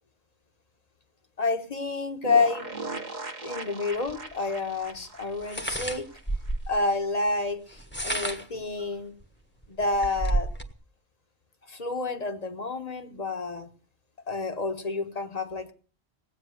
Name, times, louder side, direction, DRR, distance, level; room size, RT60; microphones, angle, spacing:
voice 1, 1.4-2.7 3.4-6.1 6.7-9.1 9.7-10.5 11.7-13.7 14.3-15.7, left 3 dB, 35° left, 7 dB, 1.4 m, -29 dB
sound 1, 2.2-6.8 7.1-7.2 7.4-7.5, right 3 dB, 40° right, 1.5 m, -39 dB
sound 2, 4.1-4.2 5.4-6.8 7.7-8.6 9.2-9.3 9.6-10.7, right 1 dB, 10° left, 1.3 m, -30 dB
18.5 x 8.8 x 6.5 m, 0.40 s
omnidirectional pair, 1.1 m